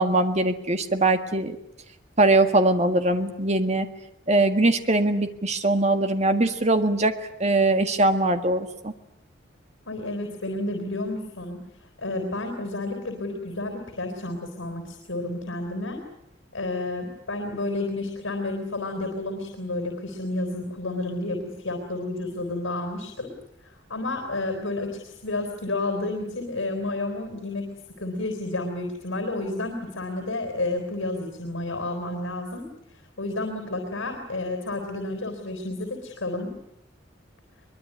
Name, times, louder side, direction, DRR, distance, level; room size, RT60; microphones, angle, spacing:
voice 1, 0.0-1.6 2.2-3.9 4.3-8.9, right 2 dB, 35° right, 8 dB, 1.8 m, -22 dB
voice 2, 9.9-11.6 12.0-16.0 16.5-23.3 23.6-32.7 33.2-36.5, left 2 dB, 85° left, 5 dB, 4.0 m, -31 dB
22.5 x 22.5 x 9.7 m, 0.79 s
head